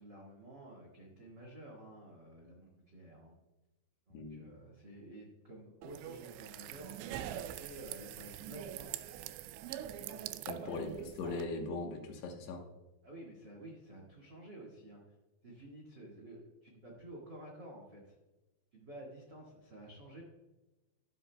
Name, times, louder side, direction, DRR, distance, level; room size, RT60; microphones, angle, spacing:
voice 1, 0.0-3.3 4.1-8.9 10.0-10.2 10.6-10.8 13.0-15.1 15.4-18.1 18.7-20.2, right 1 dB, 70° right, -1 dB, 1.0 m, -51 dB
voice 2, 4.1-4.4 10.5-10.9 11.2-12.6, left 3 dB, 75° left, 3 dB, 3.2 m, -39 dB
sound 1, 5.8-11.4, right 12 dB, 85° right, 2.8 m, -44 dB
12.5 x 11.0 x 2.3 m, 1.1 s
omnidirectional pair, 5.1 m